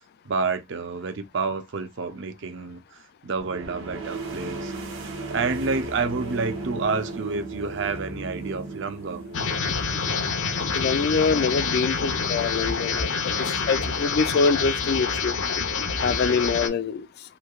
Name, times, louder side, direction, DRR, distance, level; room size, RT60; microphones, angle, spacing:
voice 1, 0.2-4.7 5.0-9.2, right 4 dB, 65° right, 0.6 m, -29 dB
sound 1, 3.4-14.9, right 2 dB, 85° right, 0.9 m, -37 dB
sound 2, 9.3-16.7, left 5 dB, 70° left, 0.7 m, -27 dB
voice 2, 10.7-13.1 13.7-15.3 16.0-17.1, left 5 dB, 55° left, 0.3 m, -24 dB
3.2 x 2.6 x 2.3 m
head